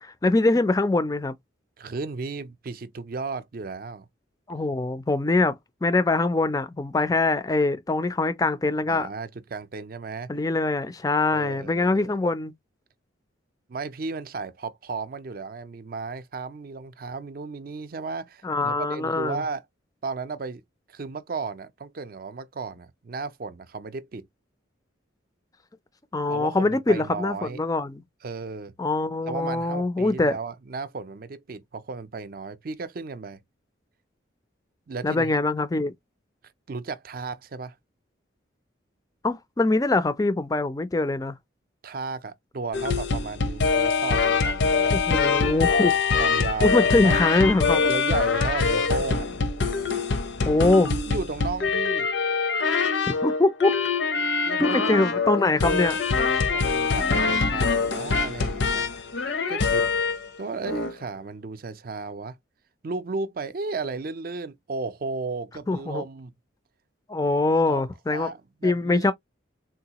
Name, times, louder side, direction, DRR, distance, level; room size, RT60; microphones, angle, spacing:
voice 1, 0.0-1.3 4.5-9.1 10.3-12.5 18.4-19.4 26.1-28.0 28.8-30.4 35.0-35.9 39.2-41.3 44.9-46.2 46.6-47.8 50.4-50.9 53.2-53.7 54.6-56.0 65.7-66.0 67.1-68.3 68.6-69.1, left 2 dB, 20° left, 0.4 m, -23 dB
voice 2, 1.8-4.1 8.9-10.3 11.3-12.2 13.7-19.6 20.0-20.6 20.9-24.3 26.3-27.6 28.2-28.7 29.3-33.4 34.9-35.4 36.7-37.8 41.8-45.0 46.2-47.2 47.8-49.3 51.1-52.1 54.4-55.0 55.3-55.9 56.5-58.9 59.5-59.9 60.4-62.4 62.8-66.3 67.7-69.1, right 4 dB, 50° right, 0.5 m, -34 dB
sound 1, 42.7-60.3 60.6-60.9, left 4 dB, 70° left, 0.6 m, -24 dB
3.8 x 2.3 x 2.8 m
head